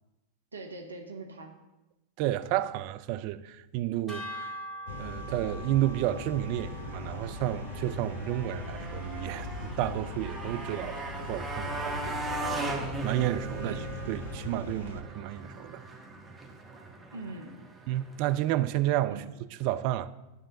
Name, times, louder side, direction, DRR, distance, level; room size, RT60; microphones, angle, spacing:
voice 1, 0.5-1.5 13.6-13.9 17.1-17.6 19.1-19.3, right 2 dB, 75° right, 0.9 m, -42 dB
voice 2, 2.2-4.6 5.0-12.2 13.0-13.8 14.1-15.8 17.9-19.2 19.6-20.1, right 14 dB, 45° right, 0.4 m, -31 dB
sound 1, 4.1-10.4, equal, 5° left, 2.9 m, -45 dB
sound 2, 4.9-15.0, left 3 dB, 60° left, 0.8 m, -40 dB
Motorcycle, 6.4-18.5, right 3 dB, 10° right, 1.2 m, -39 dB
9.6 x 3.7 x 6.9 m
figure-of-eight pair, 90°, 0 cm